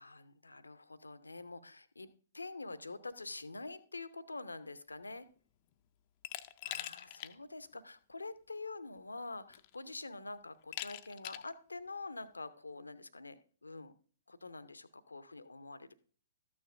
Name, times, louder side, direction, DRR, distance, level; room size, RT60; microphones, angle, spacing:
voice 1, 0.0-2.1 2.3-5.3 6.6-13.9 14.3-15.9, left 3 dB, 80° left, 13 dB, 0.7 m, -46 dB
Glass, 6.2-7.3 7.7-7.8 9.0-9.1 9.5-9.9 10.7-11.5, left 15 dB, 35° left, 0.5 m, -43 dB
13.5 x 9.4 x 2.5 m, 0.44 s
figure-of-eight pair, 115°, 0 cm